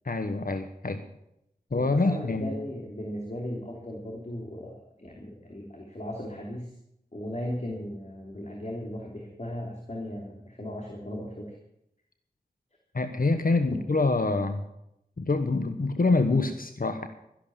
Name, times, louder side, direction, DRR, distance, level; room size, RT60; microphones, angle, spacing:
voice 1, 0.0-1.0 1.7-2.5 12.9-14.6 15.2-17.1, left 3 dB, 60° left, 8 dB, 1.1 m, -26 dB
voice 2, 1.7-6.7 7.1-11.5 13.7-13.8, left 1 dB, 45° left, 0 dB, 3.1 m, -37 dB
13.5 x 11.5 x 7.0 m, 0.78 s
wide cardioid pair, 65°, 16 cm